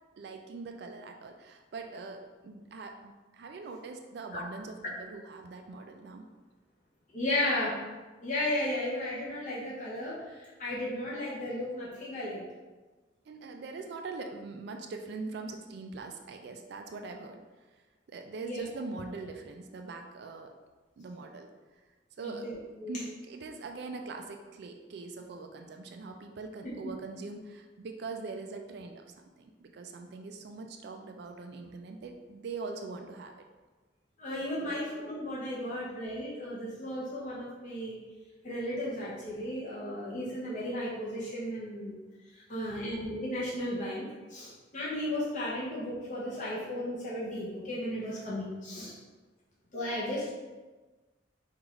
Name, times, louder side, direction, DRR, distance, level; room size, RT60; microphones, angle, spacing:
voice 1, 0.2-6.2 13.3-17.4 18.1-20.5 21.0-21.5 22.2-22.5 22.9-29.1 29.4-33.4 34.6-34.8 42.5-42.9, right 3 dB, 65° right, 4 dB, 0.3 m, -42 dB
voice 2, 7.1-7.8 8.2-10.2 10.6-12.4 18.4-18.6 22.2-22.5 22.8-23.0 26.8-26.9 34.2-38.0 38.4-42.0 42.5-48.9 49.7-50.3, left 1 dB, 45° left, -7 dB, 0.7 m, -34 dB
4.8 x 2.4 x 3.0 m, 1.2 s
head